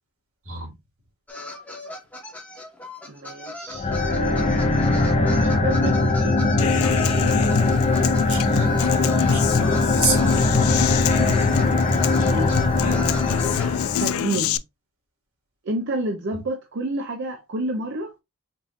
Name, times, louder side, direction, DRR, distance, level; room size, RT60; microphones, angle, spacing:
sound 1, 1.3-13.7, left 2 dB, 10° left, 0.9 m, -38 dB
voice 1, 3.1-4.0 5.3-7.0 12.2-13.2 14.0-14.6 15.6-18.1, right 2 dB, 55° right, 0.6 m, -30 dB
sound 2, 3.7-14.2, left 2 dB, 30° left, 0.6 m, -21 dB
Human voice / Acoustic guitar, 6.6-14.6, left 9 dB, 75° left, 0.3 m, -26 dB
voice 2, 8.2-10.9, right 4 dB, 75° right, 2.4 m, -30 dB
5.3 x 2.7 x 2.5 m
head